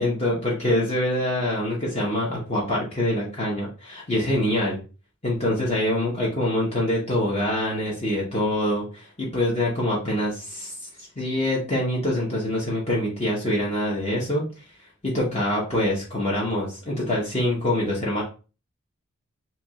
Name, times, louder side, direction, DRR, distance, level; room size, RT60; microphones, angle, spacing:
voice 1, 0.0-4.8 5.2-14.4 15.0-18.2, left 1 dB, 30° left, -5 dB, 0.9 m, -25 dB
4.6 x 2.8 x 2.3 m, 0.34 s
head